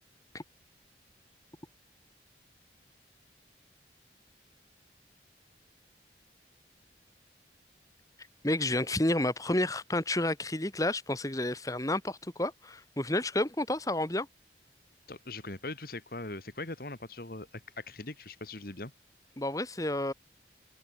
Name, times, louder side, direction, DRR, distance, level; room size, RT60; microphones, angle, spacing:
voice 1, 8.4-14.3 19.4-20.1, left 1 dB, 20° left, 1.9 m, -30 dB
voice 2, 15.1-18.9, left 2 dB, 55° left, 2.2 m, -41 dB
head